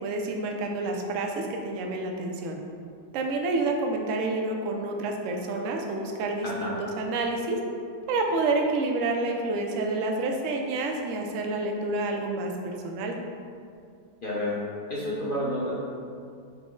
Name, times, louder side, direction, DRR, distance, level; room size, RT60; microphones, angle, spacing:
voice 1, 0.0-2.6 3.1-7.6 8.1-13.2, right 2 dB, 75° right, 2 dB, 0.7 m, -29 dB
voice 2, 6.4-6.8 14.2-14.6 14.9-15.7, left 1 dB, 55° left, -7 dB, 0.6 m, -30 dB
5.9 x 2.0 x 3.6 m, 2.3 s
omnidirectional pair, 1.8 m